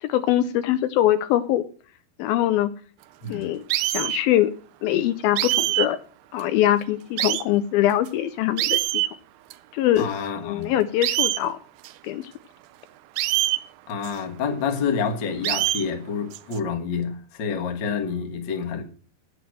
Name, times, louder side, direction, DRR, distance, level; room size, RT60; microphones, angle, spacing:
voice 1, 0.0-1.6 2.2-2.7 3.3-4.5 4.8-6.0 6.3-9.0 9.7-10.1 10.4-11.6 12.0-12.3, left 13 dB, 80° left, 2.3 m, -23 dB
sound 1, 3.7-4.2 5.4-5.9 6.4-6.5 7.2-7.4 8.1-8.2 8.6-9.1 9.5-9.6 10.0-10.1 11.0-11.4 11.8-11.9 13.2-13.6 14.0-14.1 15.4-15.8 16.3-16.6, right 16 dB, 85° right, 2.7 m, -23 dB
voice 2, 10.0-10.8 13.9-18.8, left 6 dB, 50° left, 1.3 m, -28 dB
9.3 x 8.0 x 7.6 m
omnidirectional pair, 4.6 m